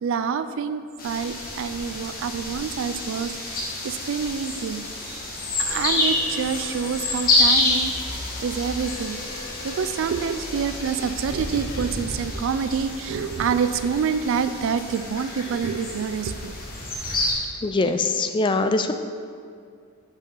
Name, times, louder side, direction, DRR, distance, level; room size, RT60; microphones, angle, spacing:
voice 1, 0.0-4.8 5.6-9.2 9.6-16.5, right 6 dB, 65° right, 12 dB, 0.3 m, -27 dB
sound 1, 1.0-17.3, left 2 dB, 45° left, 1.3 m, -28 dB
sound 2, 5.7-11.9, left 2 dB, 70° left, 0.9 m, -39 dB
voice 2, 17.6-18.9, left 3 dB, 25° left, 8 dB, 0.3 m, -22 dB
5.5 x 4.9 x 5.3 m, 2.2 s
head